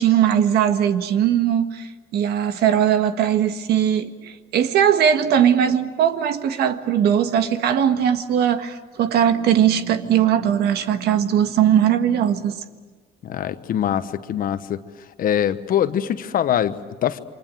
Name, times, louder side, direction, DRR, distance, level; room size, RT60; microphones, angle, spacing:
voice 1, 0.0-12.6, right 9 dB, 70° right, 1.7 m, -19 dB
voice 2, 13.2-14.8 15.2-17.2, left 10 dB, 55° left, 1.2 m, -23 dB
28.5 x 24.5 x 7.7 m
cardioid pair, 110°, 17 cm